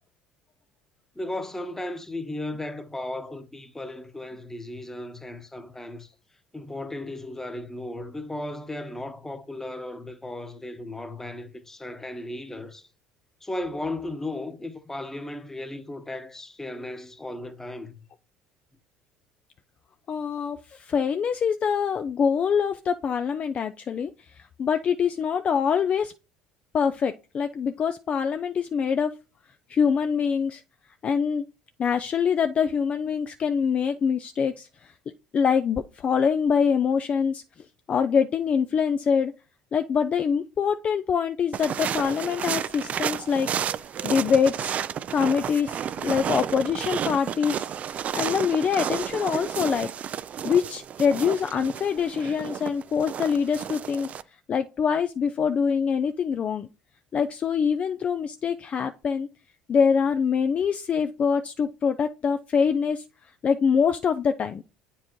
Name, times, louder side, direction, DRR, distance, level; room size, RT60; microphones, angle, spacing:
voice 1, 1.1-6.1 6.5-12.9 13.4-18.0, left 1 dB, 10° left, 1.0 m, -35 dB
voice 2, 20.1-26.1 26.7-29.1 29.7-30.6 31.0-31.4 31.8-34.9 35.3-37.4 37.9-39.3 39.7-43.5 44.0-44.8 45.1-47.6 47.9-49.9 50.4-54.1 54.5-56.7 57.1-59.3 59.7-63.0 63.4-64.6, left 6 dB, 40° left, 0.3 m, -24 dB
sound 1, 41.5-54.2, right 9 dB, 45° right, 0.3 m, -31 dB
8.2 x 4.4 x 3.0 m
hypercardioid pair, 75°, 3 cm